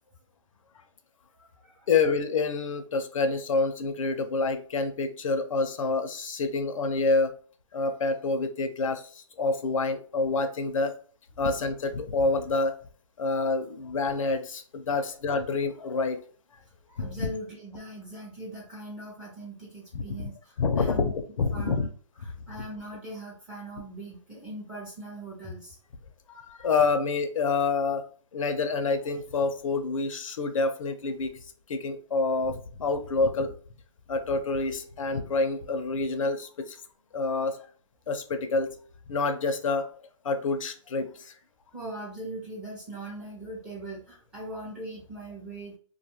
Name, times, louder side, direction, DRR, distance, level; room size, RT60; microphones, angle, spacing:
voice 1, 1.3-1.9 15.0-15.1 16.9-21.1 21.5-21.9 22.2-25.8 41.7-45.8, right 1 dB, 5° right, -5 dB, 0.4 m, -40 dB
voice 2, 1.9-7.3 7.7-10.9 11.4-12.7 13.2-16.2 17.0-17.3 19.9-20.3 20.6-21.9 26.3-28.1 28.3-31.3 31.7-33.5 34.1-36.8 37.1-37.6 38.1-38.7 39.1-39.9 40.2-41.3, left 3 dB, 75° left, 8 dB, 0.5 m, -27 dB
2.5 x 2.3 x 2.9 m, 0.43 s
hypercardioid pair, 160°, 17 cm